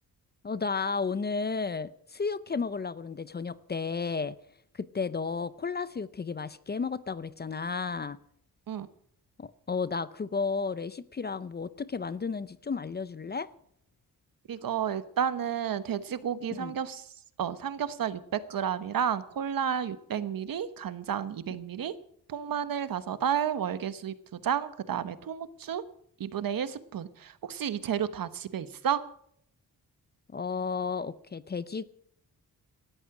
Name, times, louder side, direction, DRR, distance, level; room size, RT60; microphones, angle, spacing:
voice 1, 0.4-4.4 4.7-8.2 9.4-13.5 16.5-16.7 30.3-31.8, left 5 dB, 30° left, 16 dB, 0.5 m, -33 dB
voice 2, 14.5-17.1 17.4-21.9 22.3-25.8 26.2-29.0, right 8 dB, 65° right, 13 dB, 1.2 m, -31 dB
18.0 x 13.5 x 4.9 m, 0.66 s
wide cardioid pair, 155°, 36 cm